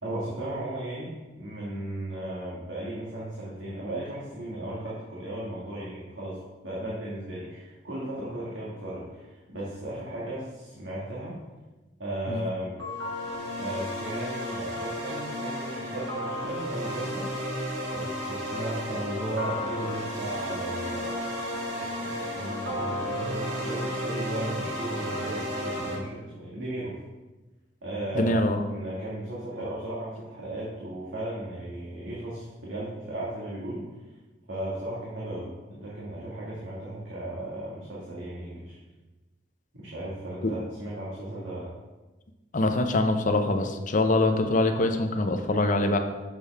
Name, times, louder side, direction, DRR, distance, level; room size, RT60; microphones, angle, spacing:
voice 1, 0.0-11.4 12.0-12.8 13.6-21.1 21.8-27.0 27.8-28.4 28.7-33.9 34.5-38.7 39.7-41.7, right 1 dB, 85° right, -7 dB, 1.7 m, -36 dB
sound 1, 12.8-25.9, equal, 70° right, 1.8 m, -33 dB
voice 2, 28.1-28.6 40.4-40.5 42.5-46.0, left 2 dB, 45° left, 6 dB, 0.6 m, -24 dB
6.9 x 6.6 x 3.4 m, 1.2 s
head